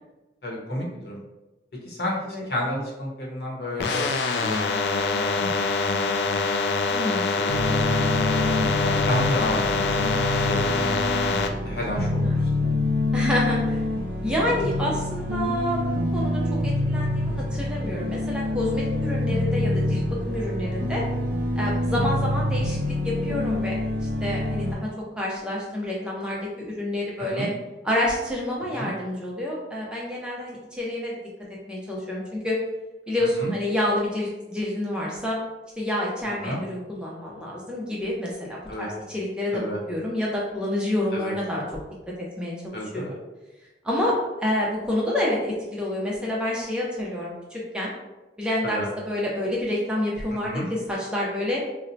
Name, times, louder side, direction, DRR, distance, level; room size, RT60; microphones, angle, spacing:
voice 1, 0.4-1.2 1.8-2.2 2.5-4.1 4.4-6.4 7.0-8.0 8.8-9.6 10.4-11.2 11.6-12.4 27.3-27.5 28.7-28.9 33.4-33.5 36.4-36.6 38.7-38.9 39.5-39.8 41.1-41.3 42.7-43.1 48.6-48.9 50.3-50.7, left 1 dB, 60° left, -3 dB, 0.9 m, -31 dB
sound 1, 3.8-11.5, left 4 dB, 80° left, 0.3 m, -25 dB
voice 2, 6.9-7.3 12.0-12.4 13.1-13.8 14.2-21.0 21.6-22.8 23.0-23.8 24.0-24.9 25.2-27.5 27.8-31.1 31.7-32.6 33.1-35.4 35.8-39.6 39.9-41.6 42.4-43.2 43.8-47.9 48.4-48.8 49.1-51.6, left 1 dB, 5° right, -5 dB, 0.5 m, -28 dB
sound 2, 7.5-24.7, left 1 dB, 75° right, 0.6 m, -26 dB
4.1 x 2.0 x 2.6 m, 1.1 s
head